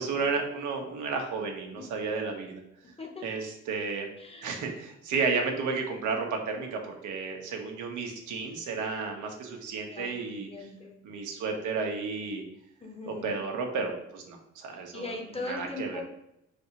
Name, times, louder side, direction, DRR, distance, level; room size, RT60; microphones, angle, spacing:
voice 1, 0.0-2.6 3.2-4.1 4.4-10.5 11.0-12.4 13.1-15.2 15.5-16.0, right 4 dB, 80° right, 2 dB, 0.9 m, -32 dB
voice 2, 4.2-4.7 9.9-11.0 12.8-13.4 14.9-16.0, left 2 dB, 20° left, 2 dB, 0.8 m, -40 dB
3.4 x 2.8 x 4.3 m, 0.81 s
cardioid pair, 90°, 30 cm